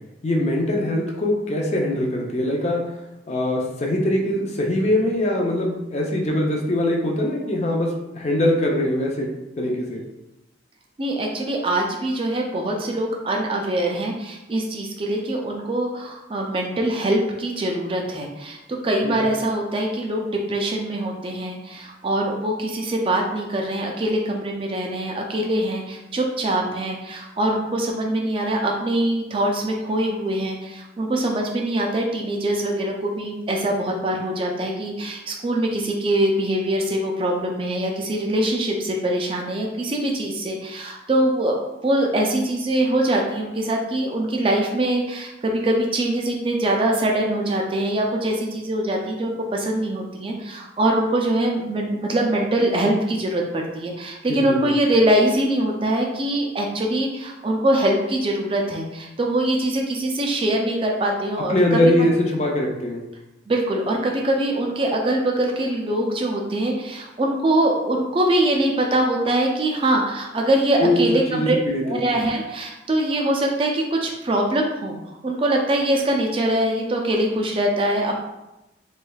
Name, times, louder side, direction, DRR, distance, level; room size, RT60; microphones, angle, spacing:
voice 1, 0.2-2.8 3.3-9.3 9.6-10.0 19.0-19.2 54.3-54.7 61.5-63.0 70.8-71.0 71.3-72.0, left 1 dB, 35° left, 0 dB, 0.5 m, -22 dB
voice 2, 11.0-61.8 63.5-71.6 71.8-78.2, right 1 dB, 30° right, 0 dB, 0.3 m, -23 dB
3.2 x 3.1 x 2.3 m, 0.96 s
head